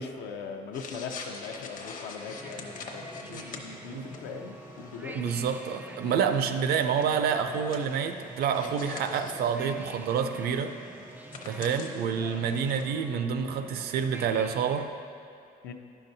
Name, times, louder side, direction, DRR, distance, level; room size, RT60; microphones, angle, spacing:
voice 1, 0.0-5.2 6.0-6.2 12.2-12.4 15.6-15.7, left 5 dB, 80° left, 5 dB, 0.6 m, -40 dB
sound 1, 0.7-12.8, left 4 dB, 55° left, 0.8 m, -45 dB
sound 2, 2.3-14.9, right 2 dB, 10° right, 0.3 m, -46 dB
voice 2, 5.1-10.7 11.4-14.9, right 7 dB, 65° right, 8 dB, 0.5 m, -28 dB
9.9 x 5.8 x 2.7 m, 2.5 s
cardioid pair, 110°, 17 cm